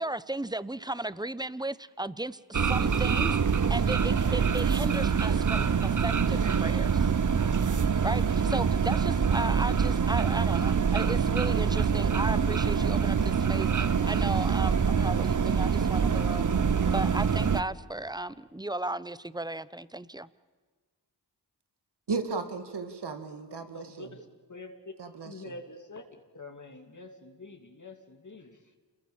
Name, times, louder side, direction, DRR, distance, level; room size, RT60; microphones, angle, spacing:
voice 1, 0.0-3.4 3.7-7.1 8.0-16.5 16.9-20.3, right 2 dB, 10° right, 17 dB, 0.9 m, -35 dB
sound 1, 2.5-17.6, right 6 dB, 50° right, 1.0 m, -25 dB
voice 2, 22.1-24.2 25.0-25.5, right 4 dB, 85° right, 8 dB, 2.3 m, -35 dB
voice 3, 23.7-24.9 25.2-26.0 26.3-28.8, left 3 dB, 45° left, 4 dB, 2.8 m, -46 dB
28.0 x 22.0 x 7.3 m, 1.4 s
cardioid pair, 55°, 40 cm